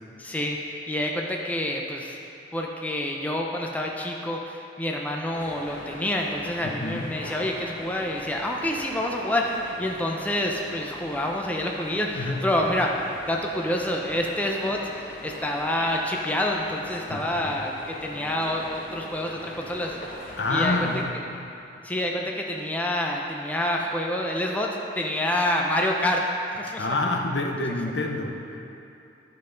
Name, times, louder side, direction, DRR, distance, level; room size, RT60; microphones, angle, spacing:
voice 1, 0.2-2.2 2.5-12.9 13.3-20.0 20.5-20.8 21.8-26.2 26.6-26.9, left 1 dB, 10° left, 0 dB, 0.5 m, -27 dB
sound 1, 5.3-21.1, left 1 dB, 50° left, 1.3 m, -42 dB
voice 2, 6.6-7.2 12.1-12.4 17.1-17.6 20.4-21.2 26.8-28.7, left 2 dB, 65° left, 2 dB, 0.7 m, -28 dB
12.0 x 5.5 x 3.9 m, 2.8 s
head